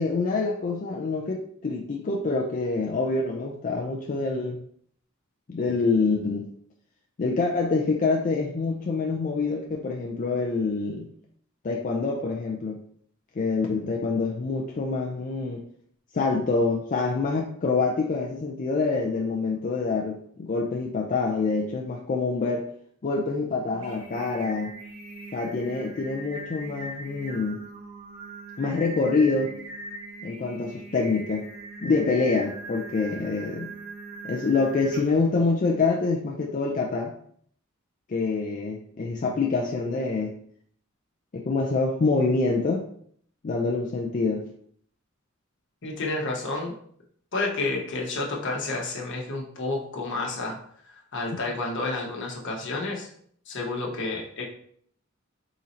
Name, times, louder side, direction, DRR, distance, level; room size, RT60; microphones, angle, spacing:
voice 1, 0.0-4.6 5.5-6.5 7.2-11.1 11.6-12.8 13.4-15.6 16.1-22.7 23.0-24.8 25.3-27.7 28.6-29.5 30.2-31.5 31.8-33.7 34.2-37.1 38.1-40.4 41.3-42.9 43.4-44.5, left 3 dB, 40° left, -1 dB, 0.4 m, -26 dB
Singing, 23.6-35.3, right 2 dB, 70° right, 0.9 m, -41 dB
voice 2, 45.8-46.7 47.3-50.6 51.1-53.1 53.5-54.5, left 2 dB, 60° left, -1 dB, 1.0 m, -30 dB
3.8 x 2.7 x 4.2 m, 0.62 s
head